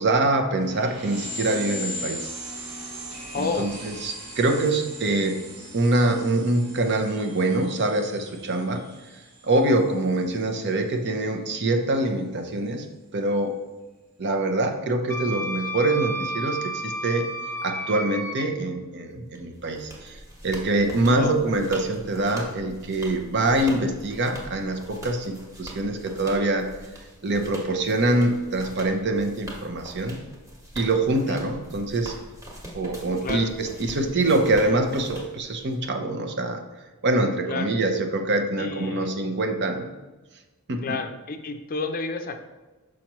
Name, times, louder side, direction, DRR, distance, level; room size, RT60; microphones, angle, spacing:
voice 1, 0.0-2.3 3.4-5.4 5.7-8.8 9.4-12.9 13.1-13.5 14.2-17.3 17.6-26.7 27.2-30.2 30.7-32.1 32.7-36.6 37.0-39.9 40.7-41.0, right 2 dB, 50° right, 5 dB, 0.7 m, -24 dB
sound 1, 0.5-10.7, equal, 75° right, 1.7 m, -39 dB
voice 2, 3.3-3.7 21.1-21.3 31.3-31.4 33.2-33.5 37.5-37.7 38.6-39.1 40.8-42.4, left 4 dB, 40° left, 7 dB, 0.5 m, -30 dB
Wind instrument woodwind instrument, 15.1-18.5, equal, 15° left, 1.1 m, -32 dB
sound 2, 19.3-35.9, equal, 15° right, 1.3 m, -42 dB
6.2 x 5.9 x 3.0 m, 1.2 s
head